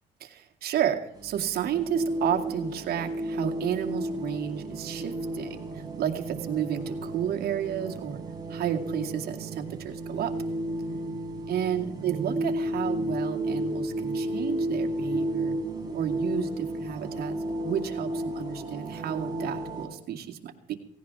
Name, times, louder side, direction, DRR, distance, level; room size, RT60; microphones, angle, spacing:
voice 1, 0.2-8.2 8.5-10.3 11.5-15.6 15.9-17.4 17.6-20.7, right 9 dB, 65° right, 4 dB, 2.3 m, -31 dB
sound 1, 1.1-19.9, right 1 dB, 25° right, 4.2 m, -32 dB
17.5 x 17.0 x 3.6 m, 0.78 s
cardioid pair, 110°, 17 cm